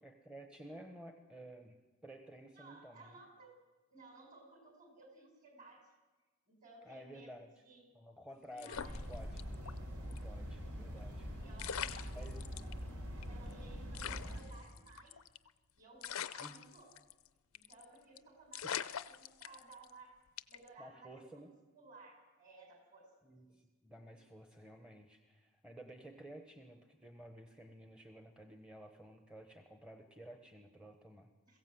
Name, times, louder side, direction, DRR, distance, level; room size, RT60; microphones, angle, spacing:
voice 1, 0.0-3.2 6.8-7.5 7.9-9.4 10.0-11.4 12.1-12.4 16.4-16.6 18.6-18.7 20.8-21.5 23.2-31.3, right 1 dB, 5° right, 3 dB, 1.0 m, -53 dB
voice 2, 2.5-3.5 3.9-5.9 6.5-7.9 8.5-9.1 9.6-9.8 10.6-10.8 11.4-12.8 13.2-15.2 15.7-16.9 17.5-20.2 20.5-21.4 21.7-23.1 23.4-23.5 31.4-31.6, right 3 dB, 40° right, 2 dB, 5.8 m, -58 dB
sound 1, 8.6-9.8 10.1-10.2 11.2-11.3 11.6-12.7 13.2-13.3 13.5-13.6 13.9-15.5 16.0-17.3 17.5-17.8 18.2-18.3 18.5-19.9 20.4-20.7, left 9 dB, 70° left, 0.6 m, -43 dB
sound 2, 8.7-14.4, equal, 70° right, 4.7 m, -44 dB
22.0 x 16.0 x 7.8 m, 1.2 s
head